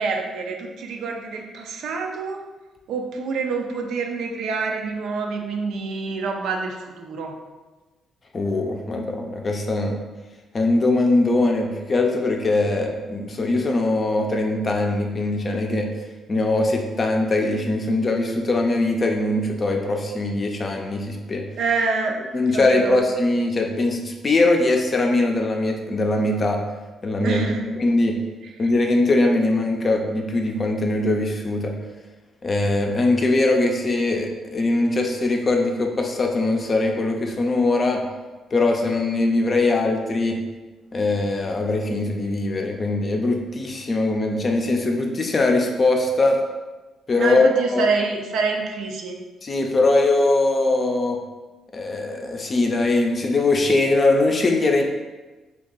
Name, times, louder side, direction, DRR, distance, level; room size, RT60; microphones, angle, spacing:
voice 1, 0.0-2.4 2.9-7.4 21.6-22.2 22.5-23.0 27.2-27.7 47.2-49.2, right 4 dB, 75° right, 2 dB, 0.4 m, -26 dB
voice 2, 8.3-10.0 10.5-15.9 16.3-21.4 22.3-26.6 27.0-27.5 27.8-28.2 28.6-31.8 32.4-38.0 38.5-40.4 40.9-46.4 47.1-47.8 49.4-51.2 51.7-54.8, left 2 dB, 35° left, 2 dB, 0.5 m, -21 dB
2.7 x 2.3 x 3.8 m, 1.2 s
cardioid pair, 90°, 0 cm